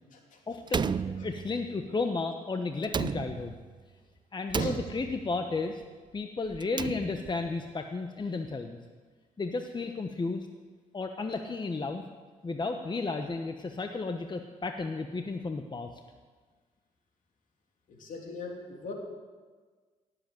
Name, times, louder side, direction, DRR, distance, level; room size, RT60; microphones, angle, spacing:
voice 1, 0.5-3.6 4.3-5.8 6.1-8.8 9.4-10.5 10.9-12.0 12.4-15.9, left 3 dB, 30° left, 5 dB, 1.1 m, -33 dB
Slam, 0.7-1.8 2.8-3.8 4.5-5.4 6.5-7.5, right 6 dB, 35° right, 0.4 m, -33 dB
voice 2, 17.9-18.9, left 4 dB, 65° left, 1 dB, 3.2 m, -40 dB
17.5 x 8.0 x 7.8 m, 1.5 s
supercardioid pair, 60°, 14 cm